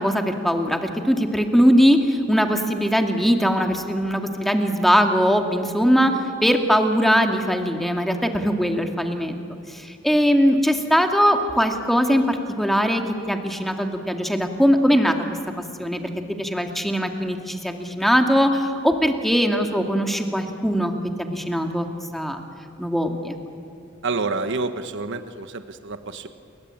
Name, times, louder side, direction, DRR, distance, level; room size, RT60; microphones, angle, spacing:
voice 1, 0.0-9.4 9.7-13.0 13.3-15.2 15.8-16.0 16.4-20.9 21.2-21.9 22.1-22.4 22.8-23.4, equal, ahead, 4 dB, 2.2 m, -20 dB
voice 2, 24.0-26.3, right 3 dB, 60° right, 9 dB, 1.2 m, -28 dB
29.5 x 23.0 x 8.8 m, 2.6 s
head